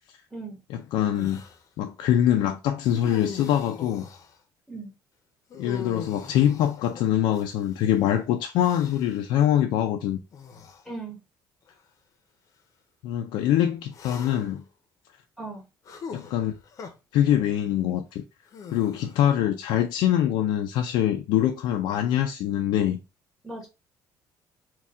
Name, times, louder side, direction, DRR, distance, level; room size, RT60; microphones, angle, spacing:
voice 1, 0.7-1.4 1.8-4.1 5.6-10.2 13.0-14.6 16.1-16.5 17.1-18.2 18.7-23.0, left 11 dB, 90° left, 0.4 m, -24 dB
sound 1, 1.1-1.6 2.8-4.4 5.5-7.8 8.6-9.2 10.3-10.8 11.7-11.8 13.9-14.6 15.9-16.9 18.5-19.3, left 6 dB, 50° left, 0.7 m, -42 dB
voice 2, 10.8-11.2 15.4-15.6 23.4-23.7, right 3 dB, ahead, 1.4 m, -37 dB
4.3 x 2.3 x 3.6 m
cardioid pair, 125°, 7 cm